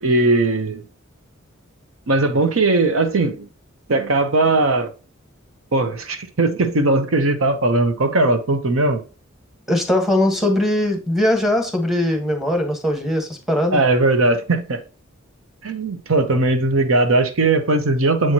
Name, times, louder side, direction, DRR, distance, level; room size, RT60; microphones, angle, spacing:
voice 1, 0.0-0.8 2.1-3.5 3.9-4.9 5.7-9.0 13.7-14.8 15.6-18.3, right 2 dB, 75° right, 0.8 m, -18 dB
voice 2, 9.7-13.8, left 1 dB, ahead, 1.2 m, -20 dB
7.6 x 4.5 x 2.8 m
head